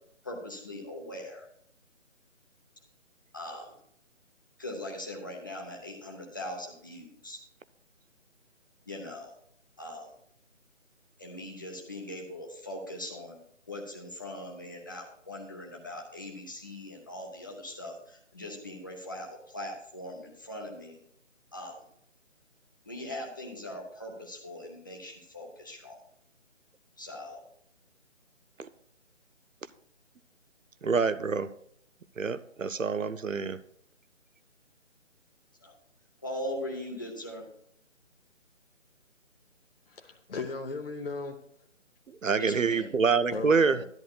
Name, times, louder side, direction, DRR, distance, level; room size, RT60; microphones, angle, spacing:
voice 1, 0.2-1.4 3.3-3.7 4.6-7.4 8.9-9.3 9.8-10.1 11.2-13.4 13.7-21.0 21.5-21.7 22.9-26.0 27.0-27.4 35.6-35.7 36.2-37.4 42.4-42.9, left 1 dB, 15° left, 0.7 m, -40 dB
voice 2, 30.8-31.5 32.2-33.6 42.2-43.8, right 5 dB, 85° right, 0.6 m, -26 dB
voice 3, 39.9-41.4 43.3-43.8, left 3 dB, 50° left, 0.8 m, -36 dB
12.0 x 10.5 x 2.3 m
figure-of-eight pair, 155°, 38 cm